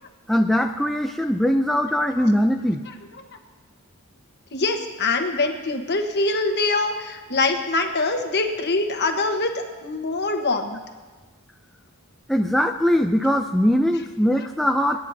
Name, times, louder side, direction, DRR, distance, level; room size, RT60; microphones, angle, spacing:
voice 1, 0.3-2.8 12.3-15.0, equal, ahead, 3 dB, 0.4 m, -21 dB
voice 2, 4.5-10.8, left 3 dB, 55° left, 5 dB, 1.2 m, -24 dB
28.5 x 9.5 x 2.7 m, 1.3 s
head